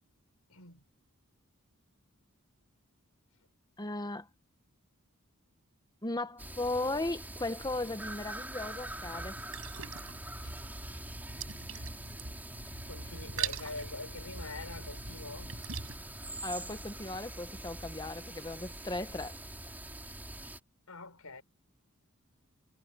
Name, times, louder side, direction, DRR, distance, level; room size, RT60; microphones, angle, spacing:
voice 1, 0.5-0.8 11.7-11.9 12.7-15.5 20.9-21.4, left 3 dB, 85° left, 5.9 m, -45 dB
voice 2, 3.8-4.3 6.0-9.4 10.4-10.5 16.4-19.4, left 2 dB, 20° left, 1.5 m, -36 dB
sound 1, 6.4-20.6, right 1 dB, 10° right, 4.0 m, -44 dB
sound 2, 8.7-16.0, right 6 dB, 70° right, 7.7 m, -43 dB
head